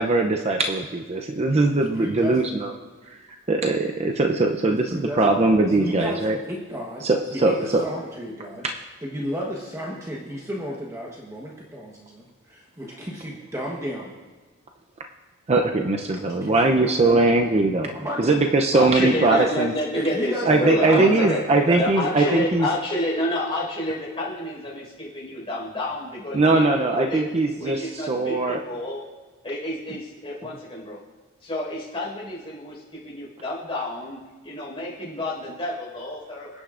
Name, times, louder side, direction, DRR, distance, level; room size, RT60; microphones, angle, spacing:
voice 1, 0.0-2.7 3.1-3.2 3.5-6.4 7.0-7.8 15.5-19.7 20.5-22.7 26.3-28.6, right 2 dB, 30° right, 3 dB, 0.6 m, -21 dB
voice 2, 1.7-2.6 4.7-5.2 5.7-7.0 7.3-8.6 9.0-14.1 16.4-17.3 17.9-18.5 19.0-19.5 19.9-22.4 36.5-36.6, equal, 15° right, -3 dB, 1.1 m, -33 dB
voice 3, 18.7-21.4 21.8-27.2 27.6-29.0 29.4-31.0 31.4-34.2 34.4-36.6, left 1 dB, 25° left, -5 dB, 4.8 m, -29 dB
25.5 x 9.8 x 2.5 m, 1.3 s
head